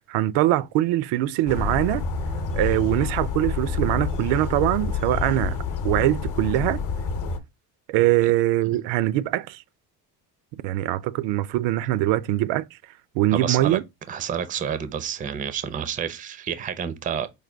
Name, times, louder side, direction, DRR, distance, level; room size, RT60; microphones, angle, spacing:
voice 1, 0.0-2.0 2.5-5.6 5.8-6.8 7.9-9.6 10.6-12.8 13.2-13.8, right 15 dB, 85° right, 0.5 m, -22 dB
sound 1, 1.5-7.4, left 5 dB, 45° left, 0.8 m, -28 dB
voice 2, 13.3-13.8 14.1-17.3, right 8 dB, 20° right, 0.4 m, -29 dB
4.9 x 2.2 x 3.3 m
cardioid pair, 140°, 42 cm